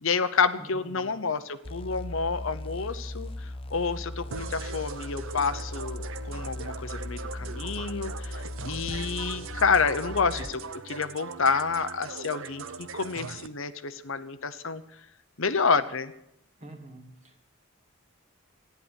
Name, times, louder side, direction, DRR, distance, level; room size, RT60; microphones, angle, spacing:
voice 1, 0.0-14.8 15.4-16.1, left 5 dB, 65° left, 11 dB, 0.9 m, -29 dB
voice 2, 0.5-1.2 16.6-17.4, right 1 dB, 30° right, 4 dB, 2.4 m, -46 dB
sound 1, 1.6-10.6, left 1 dB, 25° left, 0.5 m, -38 dB
sound 2, 4.3-13.5, right 5 dB, 65° right, 0.8 m, -40 dB
14.5 x 10.5 x 8.2 m, 0.79 s
head